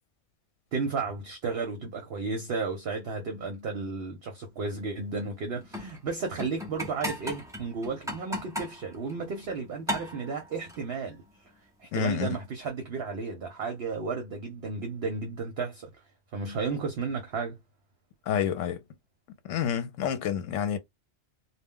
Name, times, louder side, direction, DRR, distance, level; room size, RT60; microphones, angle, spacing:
voice 1, 0.7-11.2 11.8-15.9 16.3-17.6, right 4 dB, 60° right, 0.8 m, -33 dB
sound 1, 5.6-9.6 9.9-10.9 12.2-12.4, left 1 dB, 5° right, 0.4 m, -37 dB
voice 2, 11.9-12.4 18.3-18.8 19.5-20.8, left 8 dB, 80° left, 0.9 m, -28 dB
2.3 x 2.1 x 3.6 m
omnidirectional pair, 1.3 m